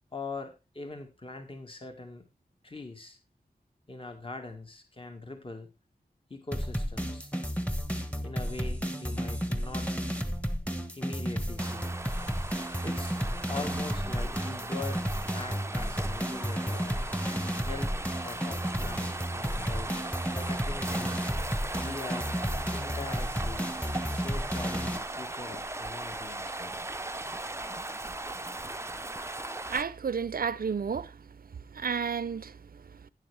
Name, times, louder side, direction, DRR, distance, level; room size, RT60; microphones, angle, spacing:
voice 1, 0.1-2.3 2.6-3.2 3.9-5.7 6.3-7.3 8.2-9.9 10.9-11.9 12.8-13.2 13.5-15.1 15.3-17.1 17.6-17.9 18.2-19.9 20.3-21.2 21.8-22.3 22.7-23.7 24.1-26.8, left 3 dB, 35° left, 1.8 m, -42 dB
sound 1, 6.5-25.0, equal, 10° left, 1.4 m, -32 dB
sound 2, 11.6-29.8, right 2 dB, 15° right, 0.6 m, -38 dB
voice 2, 29.7-31.2 31.7-33.1, right 6 dB, 65° right, 0.6 m, -32 dB
11.5 x 9.9 x 3.4 m
wide cardioid pair, 80°, 16 cm